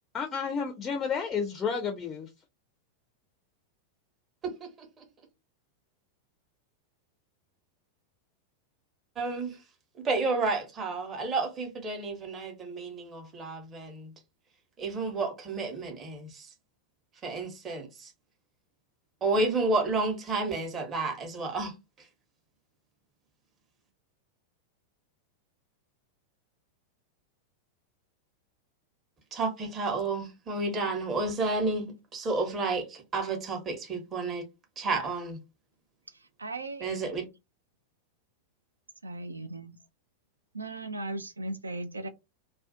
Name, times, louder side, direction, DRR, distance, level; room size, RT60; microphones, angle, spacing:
voice 1, 0.1-2.3, left 6 dB, 20° left, 0.4 m, -31 dB
voice 2, 4.4-4.9 9.2-9.6 10.0-14.1 14.8-16.5 17.2-18.1 19.2-21.7 29.3-34.4 34.8-35.4 36.8-37.2, right 3 dB, 25° right, 0.8 m, -31 dB
voice 3, 36.4-36.9 39.0-39.8 40.5-42.1, right 2 dB, 80° right, 0.3 m, -37 dB
2.4 x 2.2 x 2.5 m
figure-of-eight pair, 90°, 0 cm